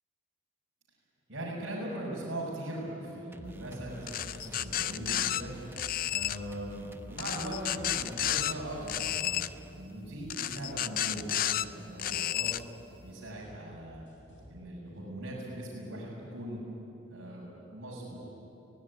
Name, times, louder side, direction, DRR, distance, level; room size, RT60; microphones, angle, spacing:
voice 1, 1.3-5.5 6.1-9.4 9.7-12.5 13.0-14.0 14.5-16.6 17.1-18.2, right 1 dB, 65° right, -8 dB, 5.9 m, -40 dB
sound 1, 3.3-10.0, right 1 dB, 10° right, 0.6 m, -49 dB
sound 2, 4.1-5.4 5.8-6.4 7.2-8.5 8.9-9.5 10.3-11.7 12.0-12.6, left 12 dB, 45° left, 0.4 m, -31 dB
sound 3, 7.8-14.5, equal, 65° left, 6.2 m, -55 dB
23.5 x 17.0 x 9.7 m, 3.0 s
head